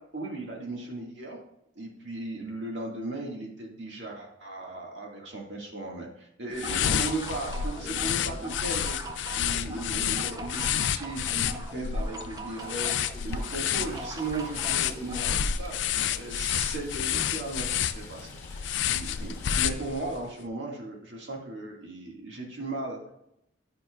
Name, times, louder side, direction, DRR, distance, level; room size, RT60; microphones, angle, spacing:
voice 1, 0.1-1.4 1.8-23.1, right 2 dB, 80° right, -1 dB, 2.0 m, -37 dB
sound 1, 6.5-20.2, left 9 dB, 75° left, 0.4 m, -30 dB
sound 2, 6.5-15.4, right 2 dB, 20° right, 0.5 m, -41 dB
Stream / Trickle dribble, 12.6-19.5, left 3 dB, 15° left, 1.1 m, -51 dB
9.5 x 5.7 x 2.4 m, 0.79 s
head